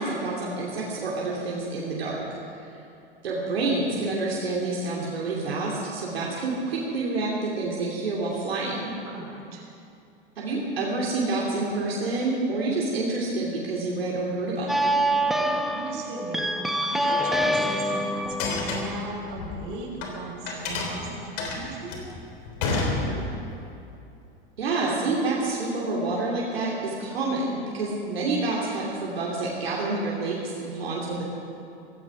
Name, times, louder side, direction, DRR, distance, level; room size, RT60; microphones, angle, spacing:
voice 1, 0.0-2.2 3.2-8.9 10.4-15.0 24.6-31.2, right 3 dB, 85° right, -4 dB, 2.8 m, -28 dB
voice 2, 9.0-9.7 15.4-22.1 22.7-23.3, right 3 dB, 55° right, 0 dB, 4.4 m, -38 dB
sound 1, 14.7-19.8, equal, ahead, 1.1 m, -26 dB
sound 2, 18.2-20.1 20.5-23.5, left 3 dB, 65° left, 3.6 m, -29 dB
16.5 x 16.0 x 4.9 m, 2.6 s
hypercardioid pair, 95°, 30 cm